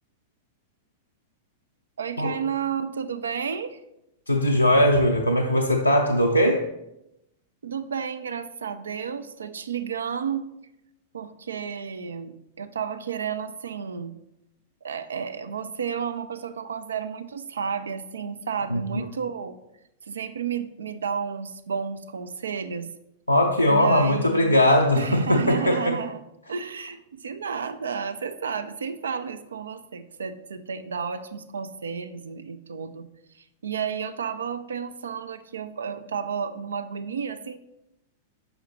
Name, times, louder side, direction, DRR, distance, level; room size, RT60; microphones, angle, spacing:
voice 1, 2.0-3.8 7.6-10.5 11.1-14.1 14.8-19.6 20.1-22.9 23.7-24.6 24.9-26.2 26.5-33.1 33.3-37.6, right 7 dB, 70° right, 10 dB, 0.4 m, -32 dB
voice 2, 4.3-6.7 18.7-19.1 23.3-26.0, left 1 dB, 90° left, 0 dB, 0.4 m, -20 dB
6.2 x 4.8 x 3.2 m, 0.87 s
figure-of-eight pair, 95°, 0 cm